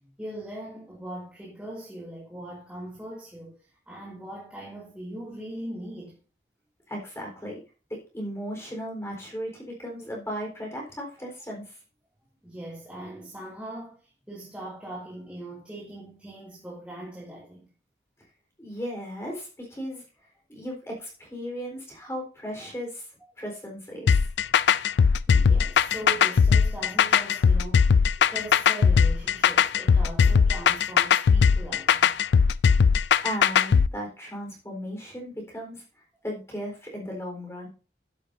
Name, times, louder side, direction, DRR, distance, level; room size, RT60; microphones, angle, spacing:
voice 1, 0.2-3.5 3.9-6.2 12.4-17.7 25.3-32.2, right 1 dB, 5° right, 2.5 m, -40 dB
voice 2, 6.9-7.6 7.9-11.8 18.6-20.0 20.5-23.1 23.4-24.3 33.2-35.8 36.2-37.7, equal, 15° left, 4.0 m, -36 dB
sound 1, 24.1-33.9, left 6 dB, 75° left, 0.4 m, -19 dB
12.5 x 10.5 x 2.7 m
head